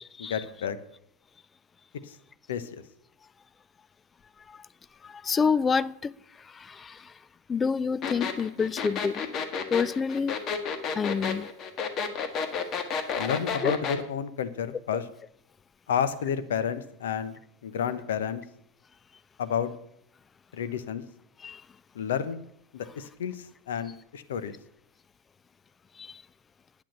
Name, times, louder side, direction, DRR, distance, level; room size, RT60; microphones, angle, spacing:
voice 1, 0.2-0.8 2.1-2.2 2.5-2.7 13.2-15.1 15.9-17.3 17.6-18.4 19.4-19.7 20.5-21.0 21.9-22.4 22.7-24.6, left 8 dB, 65° left, 1.0 m, -30 dB
voice 2, 5.2-6.1 6.6-7.0 7.5-9.2 9.7-10.4 11.0-11.5 13.6-13.7 21.4-21.6 26.0-26.1, left 5 dB, 20° left, 0.4 m, -27 dB
sound 1, 8.0-14.0, left 6 dB, 35° left, 1.5 m, -31 dB
10.5 x 8.5 x 6.7 m
figure-of-eight pair, 85°, 0 cm